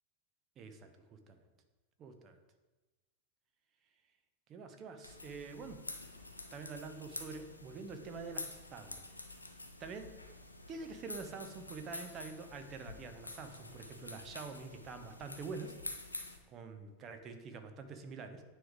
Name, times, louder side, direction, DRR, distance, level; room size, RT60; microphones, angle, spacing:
voice 1, 0.6-1.4 2.0-2.4 4.5-5.8 6.5-9.0 9.8-10.0 10.7-15.7 16.5-18.4, right 4 dB, 30° right, 7 dB, 0.9 m, -46 dB
sound 1, 5.0-16.4, left 2 dB, 85° left, 0.7 m, -48 dB
9.4 x 3.3 x 4.8 m, 1.2 s
figure-of-eight pair, 90°, 0 cm